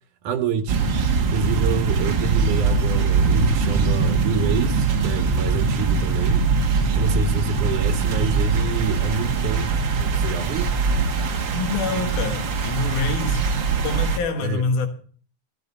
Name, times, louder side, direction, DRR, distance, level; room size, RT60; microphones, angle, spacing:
voice 1, 0.2-0.9 1.2-6.5 6.9-10.7 14.4-14.6, right 5 dB, 70° right, 2.6 m, -27 dB
sound 1, 0.7-14.2, right 4 dB, 50° right, 1.5 m, -22 dB
voice 2, 11.5-13.5 13.8-14.9, left 4 dB, 70° left, 3.0 m, -26 dB
16.0 x 14.0 x 4.2 m
omnidirectional pair, 3.8 m